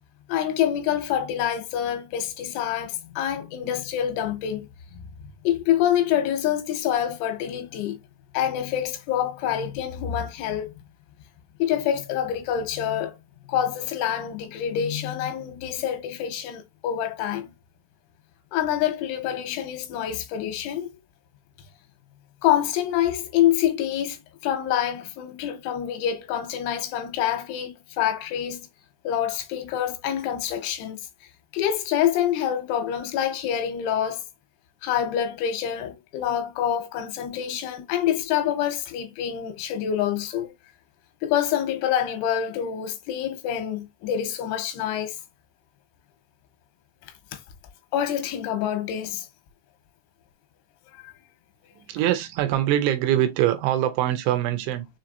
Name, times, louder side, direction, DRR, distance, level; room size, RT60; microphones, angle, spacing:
voice 1, 0.3-4.7 5.4-8.0 8.3-10.7 11.6-13.2 13.5-17.5 18.5-20.9 22.4-28.7 29.0-31.0 31.5-34.2 34.8-40.5 41.2-45.2 47.9-49.3 51.0-51.1, left 10 dB, 90° left, 3.2 m, -26 dB
voice 2, 51.8-54.9, right 12 dB, 80° right, 2.9 m, -23 dB
6.9 x 2.9 x 2.5 m
omnidirectional pair, 5.5 m